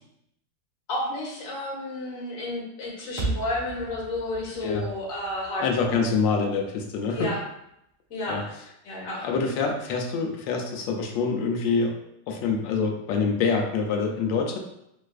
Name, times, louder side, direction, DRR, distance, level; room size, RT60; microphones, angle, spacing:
voice 1, 0.9-6.0 7.1-7.4 8.1-8.4 8.8-9.3, left 1 dB, 50° left, -4 dB, 1.2 m, -31 dB
sound 1, 3.2-7.5, right 3 dB, 30° right, 0.5 m, -36 dB
voice 2, 5.6-7.3 8.3-8.4 9.2-12.0 12.3-14.6, left 4 dB, 80° left, 2 dB, 1.3 m, -26 dB
3.3 x 3.1 x 2.3 m, 0.78 s
omnidirectional pair, 2.0 m